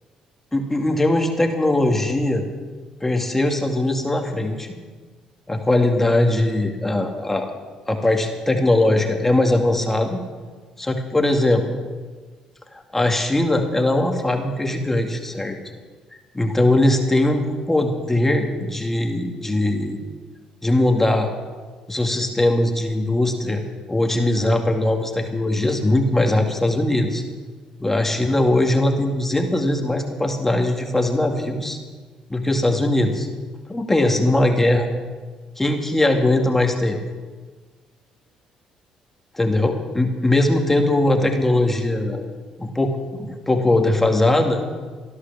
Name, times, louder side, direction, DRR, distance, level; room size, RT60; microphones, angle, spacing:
voice 1, 0.5-2.5 3.0-4.7 5.5-7.5 7.9-10.2 10.8-11.6 12.7-15.6 16.3-20.0 20.6-21.3 21.9-23.6 23.9-27.2 27.8-31.8 32.3-33.3 33.7-34.9 35.6-37.0 39.3-42.3 42.6-44.6, left 1 dB, 15° left, 3 dB, 2.3 m, -20 dB
15.5 x 11.0 x 7.2 m, 1.4 s
supercardioid pair, 75°, 2 cm